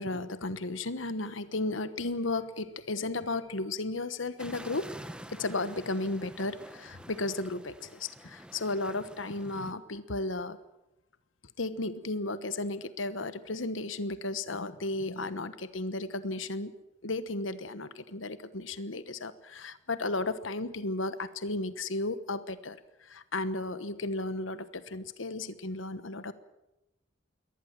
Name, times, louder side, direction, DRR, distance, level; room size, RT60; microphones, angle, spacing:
voice 1, 0.0-4.9 5.3-10.6 11.6-16.7 17.0-26.3, left 2 dB, 80° left, 13 dB, 1.2 m, -34 dB
sound 1, 4.4-9.7, right 1 dB, 5° right, 1.0 m, -48 dB
22.5 x 19.0 x 7.5 m, 0.92 s
head